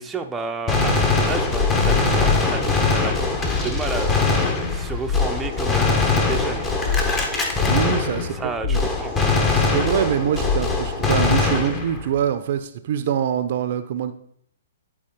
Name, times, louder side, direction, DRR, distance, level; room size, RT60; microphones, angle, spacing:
voice 1, 0.0-4.1 4.7-6.7 8.2-9.2, right 4 dB, 10° right, 3 dB, 0.7 m, -31 dB
Gunshot gunfire, 0.7-8.5 8.7-12.1, left 3 dB, 20° left, 1.4 m, -22 dB
sound 1, 1.5-3.2 3.5-12.2, left 5 dB, 40° left, 1.0 m, -28 dB
voice 2, 7.7-8.9 9.5-14.1, right 9 dB, 50° right, 10 dB, 0.7 m, -24 dB
11.5 x 4.2 x 4.5 m, 0.69 s
hypercardioid pair, 125°, 0 cm